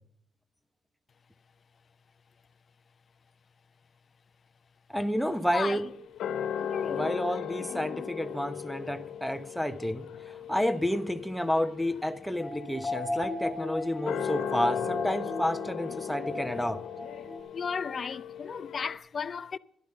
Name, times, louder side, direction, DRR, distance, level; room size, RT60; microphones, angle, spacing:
voice 1, 4.9-5.8 6.9-16.8, equal, ahead, 0.9 m, -30 dB
sound 1, 5.2-19.0, left 8 dB, 75° left, 1.2 m, -37 dB
voice 2, 6.6-7.2 7.6-8.1 17.5-19.6, left 6 dB, 45° left, 0.5 m, -35 dB
sound 2, 12.4-17.4, left 2 dB, 20° left, 2.7 m, -36 dB
12.5 x 11.5 x 5.4 m
cardioid pair, 90°, 0 cm